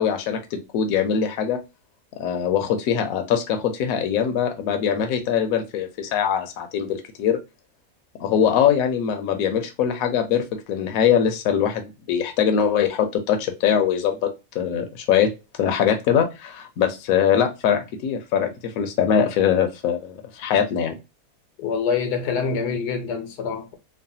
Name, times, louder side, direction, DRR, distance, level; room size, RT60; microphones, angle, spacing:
voice 1, 0.0-1.6 2.2-7.4 8.2-15.3 15.6-20.9, left 8 dB, 70° left, 1.0 m, -22 dB
voice 2, 21.6-23.7, left 5 dB, 90° left, 1.3 m, -25 dB
3.1 x 2.1 x 2.6 m
omnidirectional pair, 1.7 m